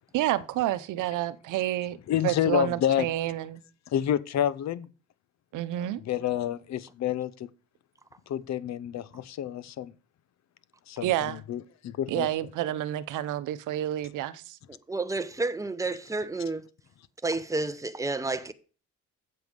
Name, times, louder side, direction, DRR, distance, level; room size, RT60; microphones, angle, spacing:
voice 1, 0.1-2.0 2.2-3.6 5.5-6.0 11.0-11.4 12.1-14.6, right 13 dB, 85° right, 0.8 m, -29 dB
voice 2, 2.1-3.1 3.9-4.9 5.8-7.5 8.3-9.9 10.9-12.3, left 10 dB, 60° left, 0.7 m, -29 dB
voice 3, 14.7-16.7 17.2-18.5, right 3 dB, 10° right, 0.9 m, -30 dB
8.1 x 7.7 x 5.3 m
cardioid pair, 90°, 30 cm